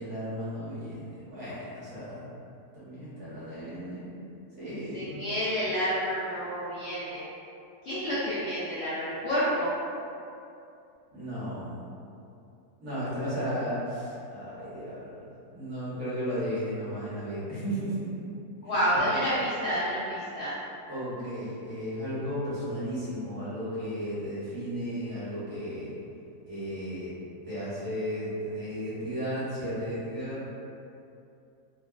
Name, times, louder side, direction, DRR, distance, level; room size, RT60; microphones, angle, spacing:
voice 1, 0.0-2.3 2.7-4.2 4.6-5.2 11.1-11.9 12.8-18.1 18.6-18.8 20.9-25.9 26.5-27.1 27.4-30.5, equal, 60° right, -11 dB, 1.4 m, -34 dB
voice 2, 4.9-7.3 7.8-9.7 18.6-20.6, equal, 60° left, -12 dB, 0.7 m, -29 dB
3.3 x 2.2 x 2.3 m, 2.6 s
omnidirectional pair, 1.7 m